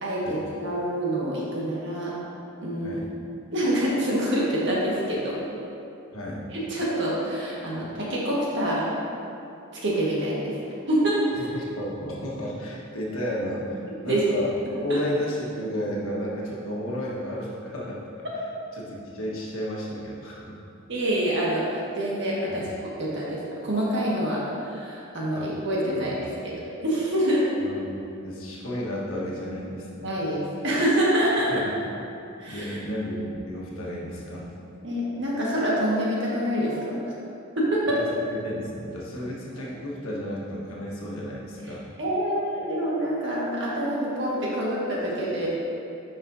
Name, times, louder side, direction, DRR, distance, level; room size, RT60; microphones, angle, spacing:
voice 1, 0.0-2.1 2.6-3.0 3.5-5.4 6.5-8.9 9.7-10.6 10.9-11.2 14.1-14.2 14.9-15.0 20.9-26.1 26.4-26.5 26.8-27.4 30.0-31.5 32.4-32.8 34.8-37.1 37.6-38.0 41.7-45.5, right 1 dB, 55° right, -6 dB, 1.6 m, -26 dB
voice 2, 6.1-6.4 11.4-14.5 14.8-18.3 18.8-20.6 22.5-22.7 25.3-25.5 25.9-26.6 27.6-27.9 28.2-30.1 31.5-31.7 32.5-34.5 37.9-41.8, equal, 75° left, -5 dB, 1.4 m, -33 dB
10.0 x 5.4 x 2.7 m, 2.7 s
head